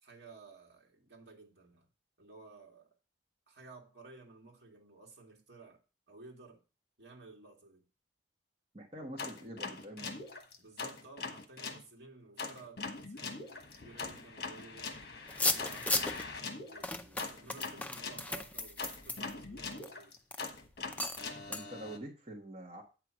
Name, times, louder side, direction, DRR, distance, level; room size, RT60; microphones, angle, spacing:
voice 1, 0.0-1.9 2.2-2.9 3.5-5.8 6.1-6.6 7.0-7.9 10.6-16.1 16.6-20.2, right 3 dB, 60° right, 2.2 m, -55 dB
voice 2, 8.7-10.1 21.5-22.8, right 1 dB, 30° right, 1.5 m, -45 dB
sound 1, 9.2-11.8 12.4-18.2 18.8-22.0, left 4 dB, 55° left, 1.2 m, -42 dB
sound 2, 15.3-16.2 16.8-19.9 20.3-20.5 20.9-21.3 21.5-21.6, left 2 dB, 10° left, 0.5 m, -35 dB
8.8 x 4.7 x 6.2 m
head